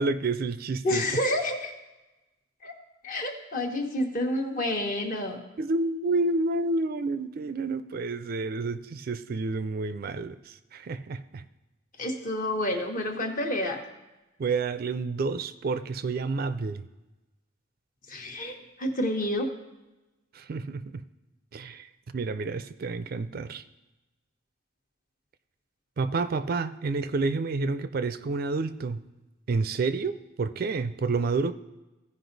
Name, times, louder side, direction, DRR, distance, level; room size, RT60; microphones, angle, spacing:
voice 1, 0.0-1.0 5.6-11.4 14.4-16.8 20.3-21.0 21.5-21.9 22.1-23.6 26.0-29.0 29.5-31.5, right 3 dB, 50° right, 12 dB, 0.4 m, -29 dB
voice 2, 0.8-1.7 2.6-2.7 3.0-5.4 12.0-13.8 18.1-19.5, left 1 dB, 45° left, 3 dB, 1.2 m, -29 dB
15.5 x 5.2 x 3.9 m, 1.0 s
head